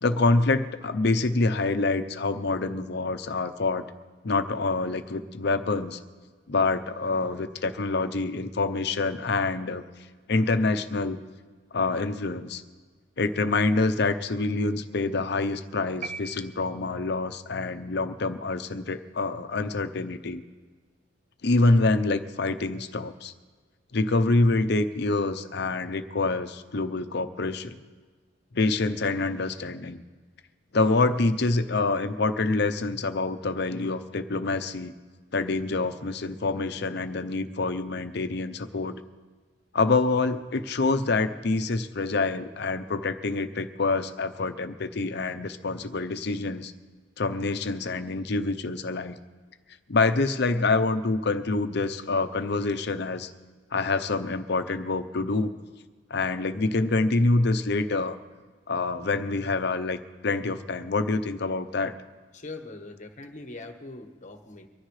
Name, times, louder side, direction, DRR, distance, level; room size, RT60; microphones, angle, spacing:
voice 1, 0.0-3.8 4.2-6.0 6.5-9.8 10.3-11.2 11.7-12.6 13.2-20.4 21.4-23.3 23.9-27.8 28.5-30.0 30.7-34.9 35.3-39.0 39.7-46.7 47.2-49.1 49.9-53.3 53.7-55.5 56.1-58.2 58.7-60.0 60.2-61.9, left 3 dB, 65° left, 10 dB, 0.7 m, -26 dB
sound 1, 16.0-17.3, right 5 dB, 40° right, 0.4 m, -40 dB
voice 2, 62.3-64.7, left 2 dB, 45° left, 6 dB, 1.3 m, -41 dB
24.0 x 14.0 x 3.3 m, 1.5 s
head